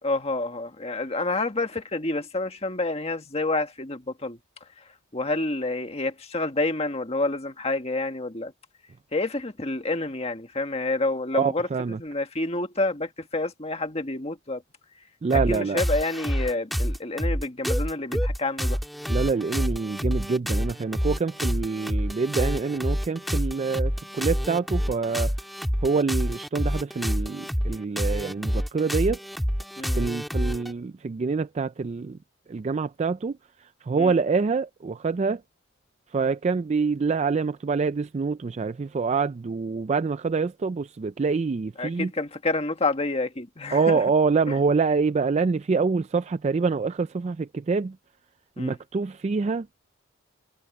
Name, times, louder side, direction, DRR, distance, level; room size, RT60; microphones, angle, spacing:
voice 1, 0.0-4.4 5.1-8.5 9.1-11.7 12.0-14.6 15.3-18.8 29.8-30.0 34.0-34.1 41.8-44.0 44.5-44.6 48.6-48.8, left 2 dB, 30° left, 1.7 m, -28 dB
voice 2, 11.3-12.0 15.2-15.8 18.1-18.2 19.1-25.3 25.8-29.2 29.8-32.2 32.5-35.4 36.1-42.1 43.7-48.0 48.6-49.7, right 4 dB, 30° right, 0.3 m, -26 dB
sound 1, 15.3-30.7, equal, ahead, 1.7 m, -27 dB
head